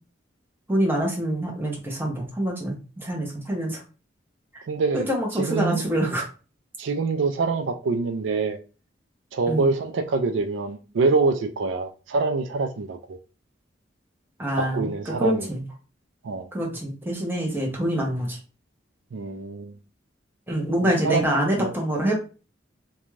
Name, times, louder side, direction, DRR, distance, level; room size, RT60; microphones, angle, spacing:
voice 1, 0.7-3.8 4.5-4.6 4.9-6.2 9.5-9.7 14.4-15.6 16.5-18.4 20.5-22.1, right 1 dB, 10° right, 0.8 m, -26 dB
voice 2, 4.7-5.1 5.4-5.8 6.8-8.6 9.3-13.2 14.6-15.5 16.2-16.5 19.1-19.7 20.8-21.3 21.6-21.7, right 4 dB, 80° right, 0.4 m, -25 dB
2.5 x 2.2 x 3.1 m
head